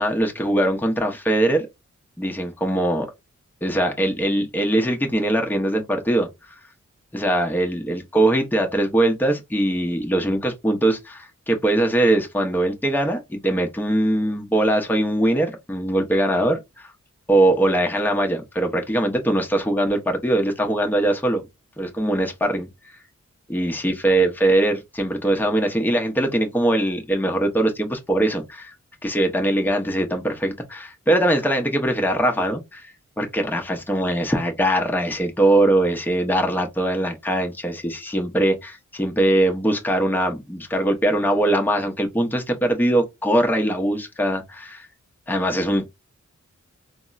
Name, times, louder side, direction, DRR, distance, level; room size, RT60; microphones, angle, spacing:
voice 1, 0.0-1.7 2.2-3.1 3.6-6.3 7.1-16.9 17.3-21.4 21.8-22.7 23.5-28.7 29.0-32.9 33.2-44.9 45.3-45.9, right 1 dB, 5° left, 0.9 m, -21 dB
3.5 x 2.1 x 2.4 m
cardioid pair, 40°, 30 cm